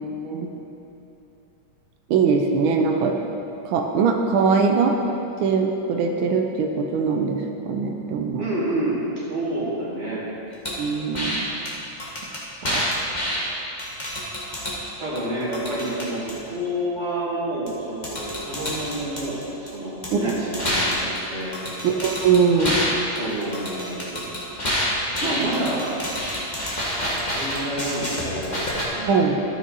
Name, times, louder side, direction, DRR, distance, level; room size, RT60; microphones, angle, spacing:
voice 1, 2.1-3.2 3.6-5.0 5.4-8.5 10.8-11.5 12.7-12.8 20.1-20.4 21.8-22.9 29.1-29.4, right 5 dB, 90° right, 3 dB, 1.5 m, -21 dB
voice 2, 8.4-10.2 15.0-21.5 23.1-24.3 25.2-25.9 27.3-29.2, right 1 dB, 35° right, -8 dB, 2.4 m, -29 dB
sound 1, 10.6-10.8 11.1-11.4 11.7-11.8 12.0-13.4 13.8-14.8 15.2-16.3 17.7-17.8 18.0-19.7 20.0-22.9 23.2-28.9, equal, 25° left, 1.5 m, -28 dB
13.5 x 6.1 x 4.1 m, 2.9 s
omnidirectional pair, 2.2 m